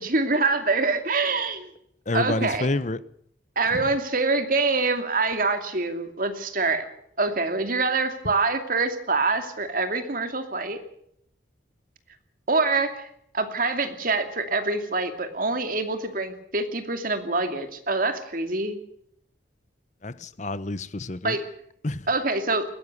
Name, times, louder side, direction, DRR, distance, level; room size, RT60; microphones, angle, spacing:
voice 1, 0.0-1.7 2.1-2.7 3.6-6.9 7.2-10.8 12.5-13.1 13.3-18.8 21.2-21.4 22.1-22.6, right 3 dB, 50° right, 2.5 m, -25 dB
voice 2, 2.1-3.0 20.0-21.4 21.8-22.1, left 2 dB, 40° left, 0.9 m, -28 dB
21.0 x 16.0 x 8.2 m
head